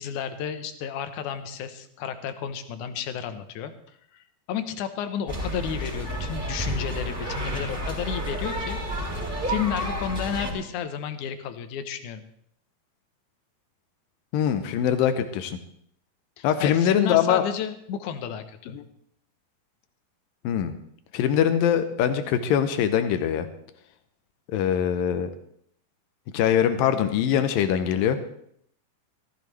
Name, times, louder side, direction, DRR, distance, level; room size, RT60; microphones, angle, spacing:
voice 1, 0.0-3.7 4.1-9.1 9.4-12.2 16.4-18.8, left 8 dB, 70° left, 9 dB, 2.2 m, -32 dB
sound 1, 5.3-10.5, equal, 5° right, 3.3 m, -30 dB
voice 2, 14.3-15.6 16.4-17.4 18.7-18.8 20.4-20.7 21.1-23.5 24.5-25.3 26.3-28.2, left 9 dB, 90° left, 9 dB, 2.5 m, -22 dB
18.5 x 14.0 x 3.2 m, 0.68 s
omnidirectional pair, 4.0 m